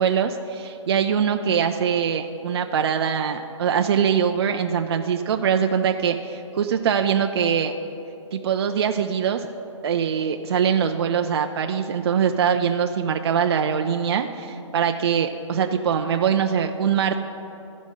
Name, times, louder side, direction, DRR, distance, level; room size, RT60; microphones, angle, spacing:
voice 1, 0.0-7.7 8.3-9.5 9.8-17.1, right 7 dB, 50° right, 5 dB, 0.4 m, -23 dB
14.0 x 5.1 x 5.4 m, 2.9 s
hypercardioid pair, 160°, 16 cm